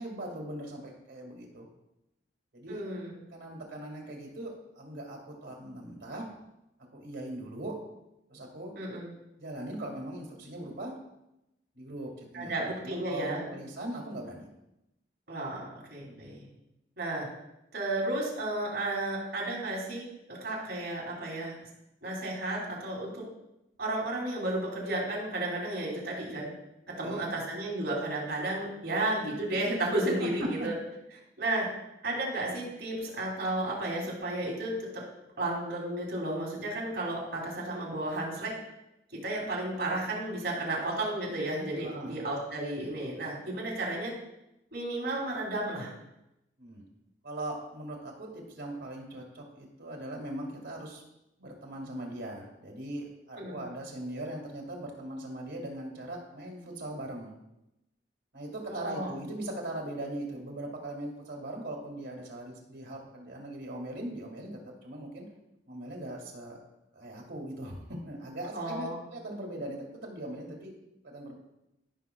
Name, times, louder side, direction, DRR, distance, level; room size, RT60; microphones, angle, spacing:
voice 1, 0.0-1.7 2.5-2.8 3.3-6.3 6.9-7.8 8.3-8.7 9.4-10.9 11.7-14.5 16.0-16.4 27.0-27.3 30.2-30.3 30.6-30.7 41.8-42.1 46.6-46.8 47.2-51.0 51.4-57.3 58.3-65.2 65.7-66.6 66.9-70.7 71.0-71.3, right 1 dB, 85° right, -1 dB, 2.1 m, -40 dB
voice 2, 2.7-3.1 8.7-9.1 12.3-13.4 15.3-16.5 17.0-17.3 17.7-21.6 22.0-23.2 23.8-26.5 27.0-30.7 31.4-31.7 32.0-35.0 35.4-38.5 39.1-44.1 44.7-45.9 53.3-53.6 58.7-59.1 68.5-69.0, right 2 dB, 70° right, -4 dB, 3.0 m, -33 dB
15.0 x 5.7 x 2.3 m, 0.88 s
head